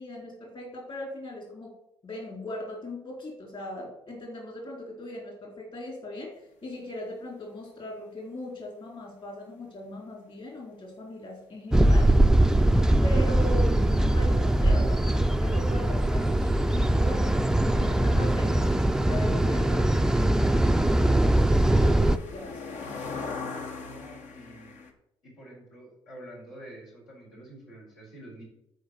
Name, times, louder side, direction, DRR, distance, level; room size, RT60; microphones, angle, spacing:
voice 1, 0.0-1.7 2.0-12.2 13.0-13.8 14.1-22.6, left 1 dB, 40° left, -1 dB, 4.1 m, -39 dB
sound 1, 11.7-22.2, right 1 dB, 5° right, 0.4 m, -22 dB
sound 2, 19.2-24.9, left 4 dB, 60° left, 1.3 m, -41 dB
voice 2, 23.7-24.7 25.2-28.4, right 1 dB, 80° left, -5 dB, 4.3 m, -47 dB
9.2 x 4.8 x 7.2 m, 0.81 s
hypercardioid pair, 55°, 13 cm